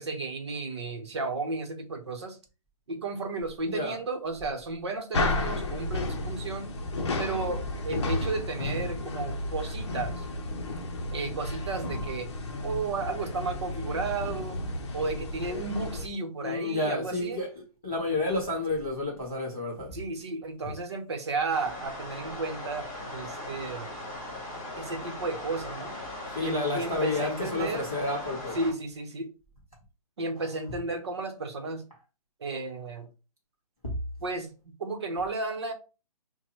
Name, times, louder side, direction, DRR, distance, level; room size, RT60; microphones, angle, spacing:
voice 1, 0.0-2.4 2.9-6.7 7.2-10.3 11.1-12.3 12.6-14.6 14.9-17.4 19.9-23.9 24.8-25.9 26.4-27.9 28.5-29.3 30.2-31.8 32.4-33.1 34.2-34.5 34.8-35.7, right 3 dB, 45° right, 0.9 m, -33 dB
voice 2, 3.7-4.0 16.4-19.9 20.6-20.7 26.3-28.6 33.8-34.0, left 2 dB, ahead, 0.3 m, -30 dB
sound 1, 5.1-16.1, left 2 dB, 45° left, 0.7 m, -32 dB
sound 2, 21.5-28.7, left 1 dB, 20° left, 2.0 m, -39 dB
5.7 x 2.2 x 3.1 m
hypercardioid pair, 180°, 19 cm